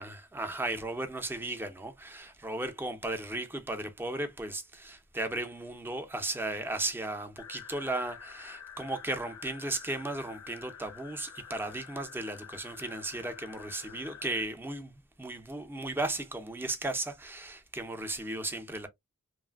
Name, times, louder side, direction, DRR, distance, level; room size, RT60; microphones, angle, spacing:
voice 1, 0.0-18.9, right 2 dB, 10° right, 0.5 m, -35 dB
sound 1, 7.4-14.4, left 8 dB, 85° left, 0.5 m, -48 dB
3.0 x 2.4 x 2.2 m
head